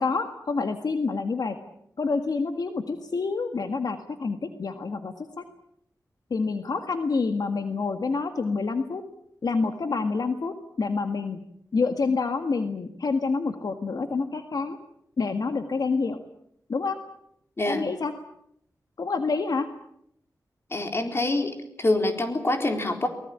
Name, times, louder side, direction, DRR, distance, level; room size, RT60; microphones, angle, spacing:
voice 1, 0.0-1.6 2.0-5.4 6.3-9.0 9.4-11.4 11.7-14.8 15.2-16.2 16.7-17.0 17.6-18.1 19.0-19.7, left 4 dB, 70° left, 7 dB, 1.7 m, -27 dB
voice 2, 20.7-23.1, left 2 dB, 35° left, 5 dB, 4.1 m, -26 dB
24.0 x 20.0 x 8.7 m, 0.73 s
wide cardioid pair, 110°, 7 cm